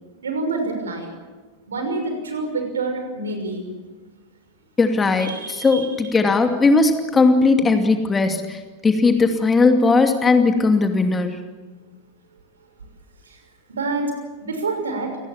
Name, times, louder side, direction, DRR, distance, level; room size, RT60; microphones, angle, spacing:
voice 1, 0.2-1.1 1.7-3.7 5.2-6.1 13.3-13.4 13.7-14.1 14.4-15.2, right 3 dB, 70° right, 5 dB, 6.0 m, -27 dB
voice 2, 4.8-8.4 8.8-11.4, left 3 dB, 15° left, 6 dB, 2.6 m, -17 dB
28.5 x 19.5 x 7.3 m, 1.3 s
figure-of-eight pair, 90°, 0 cm